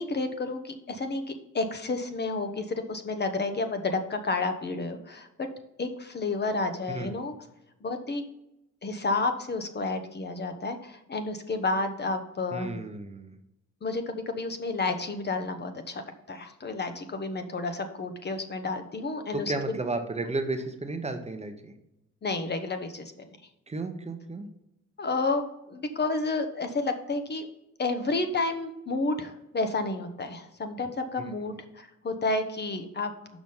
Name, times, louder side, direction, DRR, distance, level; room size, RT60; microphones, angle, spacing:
voice 1, 0.0-5.3 5.8-7.3 7.8-8.3 8.8-12.8 13.8-19.8 22.2-23.3 25.0-27.5 27.8-33.1, left 3 dB, 35° left, 7 dB, 0.9 m, -31 dB
voice 2, 12.5-13.4 19.3-21.7 23.7-24.5, right 2 dB, 20° right, 6 dB, 0.9 m, -33 dB
6.1 x 5.1 x 5.5 m, 0.87 s
cardioid pair, 90°, 30 cm